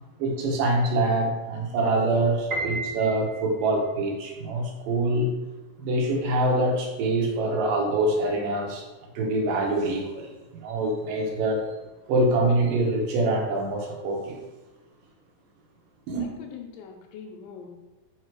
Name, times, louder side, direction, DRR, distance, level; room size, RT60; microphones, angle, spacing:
voice 1, 0.2-5.3 5.8-8.8 9.2-11.7 12.1-14.4 16.1-16.3, right 2 dB, 75° right, 1 dB, 2.5 m, -25 dB
Piano, 2.5-3.8, right 2 dB, 55° right, 1.4 m, -32 dB
voice 2, 16.2-17.7, left 6 dB, 80° left, 3 dB, 2.1 m, -42 dB
5.6 x 4.7 x 4.5 m, 1.1 s
omnidirectional pair, 4.1 m